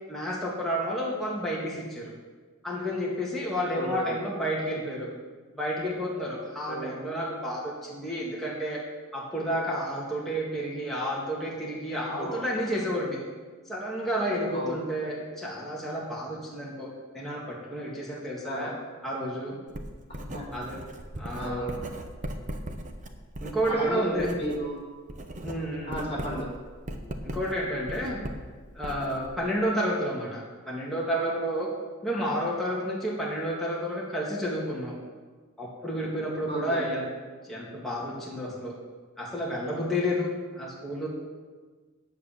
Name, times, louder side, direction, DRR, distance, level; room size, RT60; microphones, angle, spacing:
voice 1, 0.1-2.1 2.6-5.1 5.6-8.8 9.1-13.2 13.7-18.7 19.0-19.6 20.5-20.8 21.2-21.7 23.4-24.3 25.4-26.0 27.2-28.2 28.7-31.7 32.0-35.0 35.6-37.1 37.5-38.8 39.2-40.3 40.5-41.1, equal, ahead, -6 dB, 1.8 m, -31 dB
voice 2, 3.7-4.2 6.7-7.0 12.1-12.5 14.5-14.8 18.4-18.8 20.3-20.5 21.4-21.8 23.7-24.8 25.9-26.5 36.5-36.9, equal, 30° left, -4 dB, 4.0 m, -33 dB
Writing, 19.7-24.7 24.9-29.6, right 1 dB, 35° right, 0.9 m, -38 dB
9.1 x 8.3 x 7.0 m, 1.4 s
head